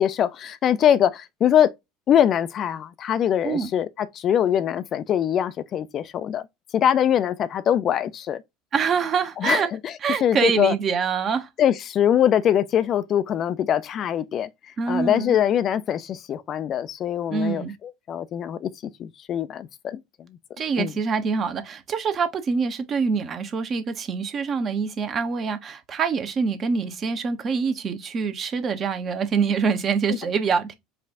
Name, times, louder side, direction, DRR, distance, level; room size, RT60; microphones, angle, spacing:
voice 1, 0.0-1.7 2.1-6.4 6.7-8.4 9.4-9.9 10.2-10.7 11.6-14.5 14.9-18.7 19.0-20.0 20.8-20.9, left 10 dB, 40° left, 0.3 m, -22 dB
voice 2, 8.7-9.7 10.0-11.5 14.8-15.4 17.3-17.7 20.6-30.7, right 5 dB, 35° right, 0.8 m, -25 dB
4.7 x 2.4 x 3.5 m
figure-of-eight pair, 70°, 0 cm